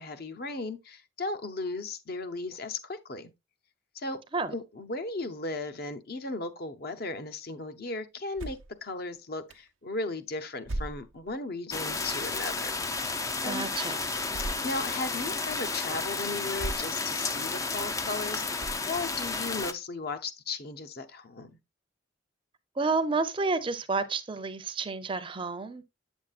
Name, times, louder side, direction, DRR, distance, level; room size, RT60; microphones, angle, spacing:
voice 1, 0.0-3.3 3.9-4.2 4.5-12.7 13.4-13.7 14.6-21.5, left 3 dB, 50° left, 0.8 m, -36 dB
sound 1, 8.4-8.8 9.5-9.6 10.7-11.3 12.0-12.1 14.3-14.8 15.4-15.5 16.5-17.0 17.5-17.6 18.6-19.1, right 1 dB, 90° right, 0.7 m, -37 dB
sound 2, 11.7-19.7, left 3 dB, 15° left, 0.4 m, -32 dB
voice 2, 13.4-14.0 22.8-25.8, right 4 dB, 25° right, 0.6 m, -30 dB
8.1 x 7.2 x 2.4 m
head